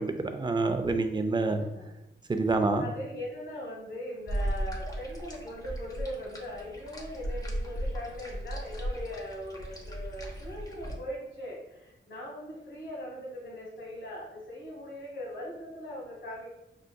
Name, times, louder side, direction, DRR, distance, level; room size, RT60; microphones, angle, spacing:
voice 1, 0.0-1.7 2.3-2.9, right 3 dB, 25° right, 6 dB, 0.4 m, -27 dB
voice 2, 2.5-16.5, equal, 70° left, -3 dB, 1.3 m, -40 dB
sound 1, 4.3-11.0, equal, 20° left, 0.8 m, -36 dB
5.5 x 2.5 x 2.2 m, 0.91 s
cardioid pair, 75°, 20 cm